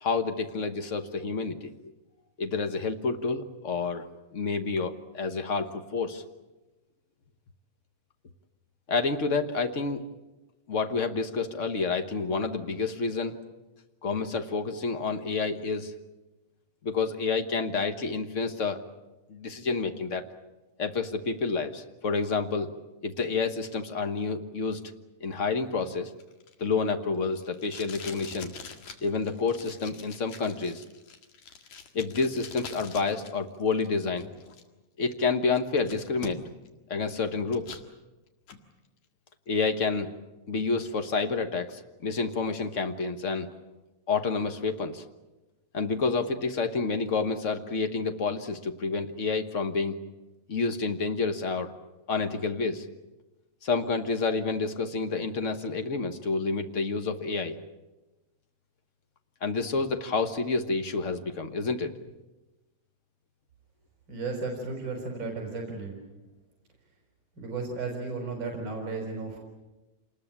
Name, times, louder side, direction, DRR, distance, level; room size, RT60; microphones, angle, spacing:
voice 1, 0.0-1.7 2.4-6.2 8.9-10.1 10.7-13.4 14.0-15.9 16.8-18.8 19.3-20.2 20.8-22.7 23.0-24.8 25.2-26.1 26.6-28.5 29.0-30.8 31.9-34.3 35.0-36.4 36.9-37.8 39.5-40.1 40.5-43.5 44.1-45.0 45.7-50.0 50.5-51.7 52.1-52.9 53.6-57.6 59.4-62.0, left 4 dB, 55° left, 7 dB, 0.8 m, -29 dB
Packing tape duct tape, 25.8-33.3 33.6-34.6 35.1-35.2 35.5-36.7 37.1-37.9 38.3-38.6, left 6 dB, 75° left, 3.2 m, -45 dB
voice 2, 64.1-66.0 67.4-69.4, right 3 dB, 40° right, 1 dB, 5.6 m, -34 dB
27.5 x 20.5 x 8.8 m, 1.1 s
omnidirectional pair, 3.3 m